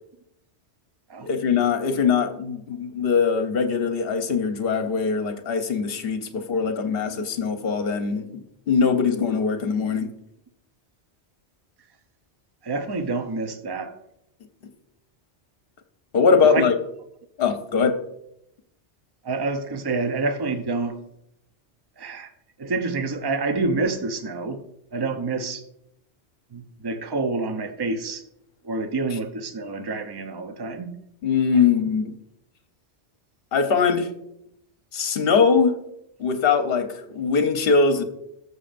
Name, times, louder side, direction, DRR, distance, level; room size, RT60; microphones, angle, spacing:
voice 1, 1.2-10.1 16.1-16.7 17.4-18.0 31.2-32.1 33.5-34.1 34.9-35.8 36.2-38.0, left 5 dB, 60° left, 7 dB, 1.0 m, -22 dB
voice 2, 12.6-14.0 16.4-16.6 19.2-21.0 22.0-22.3 22.6-24.6 24.9-25.6 26.5-28.2 28.6-31.0, right 3 dB, 30° right, 8 dB, 0.5 m, -28 dB
14.0 x 6.6 x 2.5 m, 0.78 s
omnidirectional pair, 1.2 m